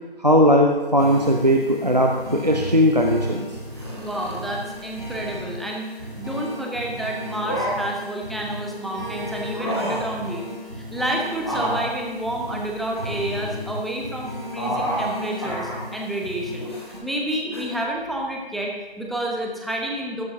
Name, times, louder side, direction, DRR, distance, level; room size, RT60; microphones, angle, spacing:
voice 1, 0.2-3.5, equal, 40° right, 2 dB, 0.7 m, -18 dB
sound 1, 1.0-17.0, equal, 60° right, 4.1 m, -35 dB
sound 2, 3.7-5.4 7.2-8.1 9.4-10.2 11.4-13.2 14.5-15.1 15.4-15.9 16.6-17.0 17.5-17.6, equal, 25° left, 1.5 m, -30 dB
voice 2, 4.0-10.4 10.8-16.7 17.0-20.2, right 1 dB, ahead, -1 dB, 0.6 m, -29 dB
15.5 x 12.0 x 2.7 m, 1.2 s
figure-of-eight pair, 175°, 31 cm